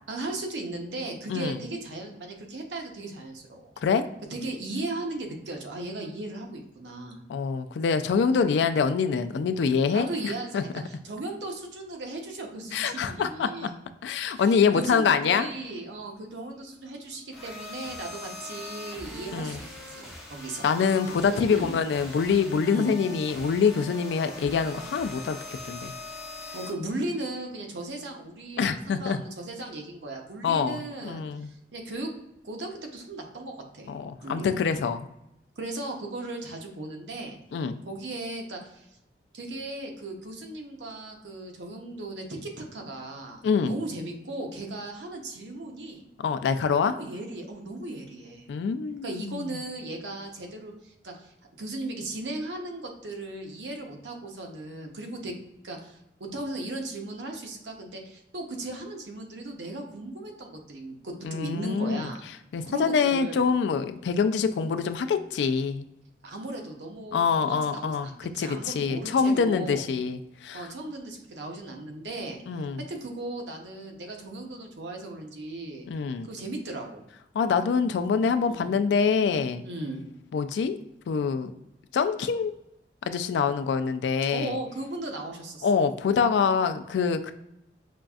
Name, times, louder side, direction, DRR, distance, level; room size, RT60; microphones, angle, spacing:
voice 1, 0.1-3.7 4.3-7.2 9.9-13.7 14.3-20.7 21.3-21.7 22.7-22.9 26.5-32.1 32.4-34.6 35.6-37.4 37.8-38.9 39.3-46.0 46.8-48.5 49.0-51.3 51.6-55.4 55.6-62.2 62.6-63.4 66.2-69.8 70.5-75.9 76.3-77.0 78.4-78.7 79.6-80.0 84.3-85.7, right 2 dB, 85° right, 2 dB, 0.7 m, -37 dB
voice 2, 7.3-10.6 12.7-13.7 14.0-15.5 19.3-19.6 20.6-25.4 25.6-25.9 28.6-29.2 30.4-31.5 33.9-35.1 37.5-37.8 43.4-43.8 46.2-46.9 48.5-49.6 61.2-62.1 62.5-65.9 67.1-70.7 72.5-72.8 75.9-76.3 77.3-79.6 80.3-80.7 81.1-81.5 81.9-82.5 83.1-84.6 85.6-87.3, left 5 dB, 75° left, 10 dB, 0.3 m, -25 dB
sound 1, 17.3-26.7, left 2 dB, ahead, 0.7 m, -41 dB
5.1 x 2.4 x 2.3 m, 0.84 s
head